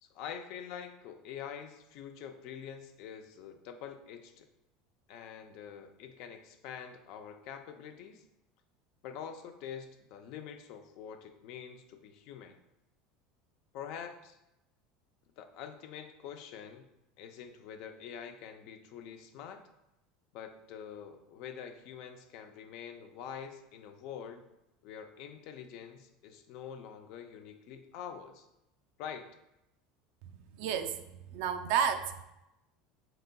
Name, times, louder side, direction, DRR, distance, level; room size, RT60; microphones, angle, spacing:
voice 1, 0.0-4.5 5.1-8.2 9.0-12.6 13.7-14.4 15.4-16.9 17.2-19.7 20.3-24.5 24.8-28.5 29.0-29.3, left 8 dB, 60° left, 7 dB, 0.4 m, -45 dB
voice 2, 30.6-31.0 31.3-32.2, right 8 dB, 65° right, 9 dB, 0.3 m, -31 dB
5.4 x 3.9 x 2.2 m, 0.90 s
supercardioid pair, 145°, 0 cm